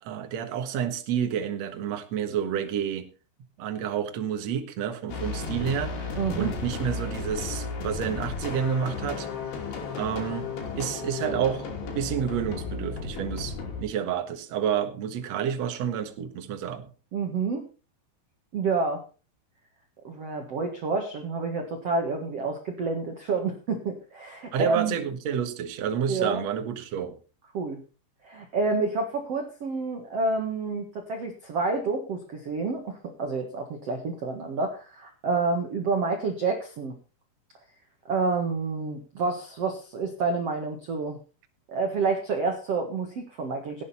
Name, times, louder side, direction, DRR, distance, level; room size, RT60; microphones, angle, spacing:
voice 1, 0.0-3.1 3.6-9.3 9.9-10.5 10.8-11.7 11.9-16.9 24.5-27.2, right 8 dB, 75° right, 7 dB, 1.6 m, -29 dB
sound 1, 5.1-13.8, left 4 dB, 65° left, 4.8 m, -34 dB
voice 2, 6.1-6.6 17.1-17.6 18.5-19.0 20.0-24.9 26.1-26.4 27.5-27.8 28.2-36.9 38.1-41.2 41.7-43.8, right 4 dB, 55° right, 3 dB, 1.8 m, -29 dB
17.5 x 9.2 x 4.3 m, 0.35 s
omnidirectional pair, 5.4 m